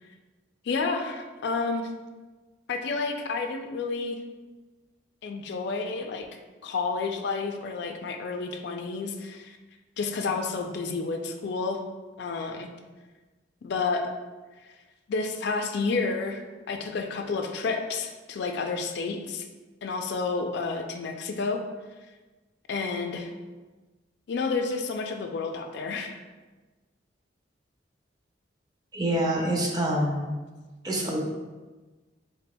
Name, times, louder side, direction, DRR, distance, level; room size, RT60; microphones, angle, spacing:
voice 1, 0.6-1.9 2.7-4.2 5.2-6.3 6.6-9.6 10.0-11.8 12.2-12.7 13.6-14.1 15.1-16.4 16.7-19.4 19.8-21.6 22.7-23.3 24.3-26.1, left 4 dB, 65° left, 5 dB, 0.4 m, -30 dB
voice 2, 28.9-30.3 30.8-31.2, right 1 dB, 20° right, -1 dB, 0.5 m, -26 dB
4.1 x 3.6 x 2.2 m, 1.3 s
head